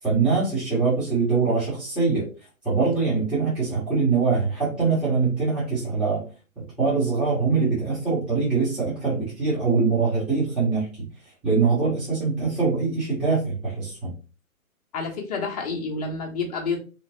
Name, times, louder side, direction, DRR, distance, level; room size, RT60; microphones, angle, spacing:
voice 1, 0.0-2.3 2.6-6.2 6.6-14.1, right 4 dB, ahead, -12 dB, 1.1 m, -23 dB
voice 2, 14.9-16.8, left 4 dB, 25° left, 0 dB, 0.9 m, -29 dB
3.9 x 3.0 x 2.9 m, 0.35 s
figure-of-eight pair, 135°, 42 cm